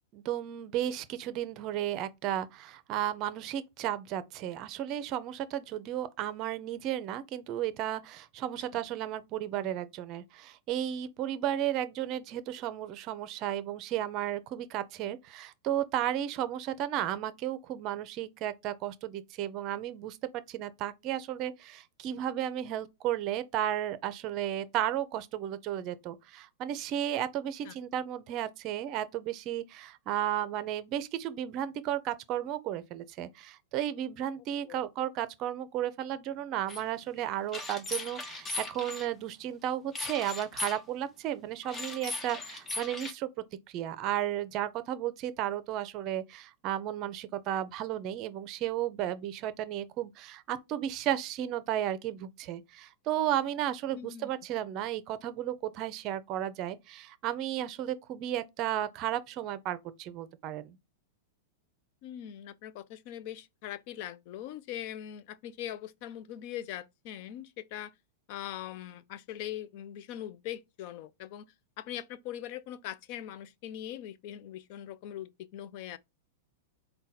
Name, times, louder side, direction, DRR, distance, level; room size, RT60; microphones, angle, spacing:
voice 1, 0.1-43.3 43.7-60.8, right 11 dB, 40° right, 0.6 m, -34 dB
sound 1, 36.7-36.8 37.5-39.1 39.9-40.8 41.6-43.1, left 2 dB, 20° left, 0.8 m, -38 dB
voice 2, 53.9-54.3 62.0-67.9 68.3-71.5 71.8-76.0, left 11 dB, 50° left, 0.5 m, -41 dB
4.0 x 2.2 x 3.9 m
hypercardioid pair, 125°, 0 cm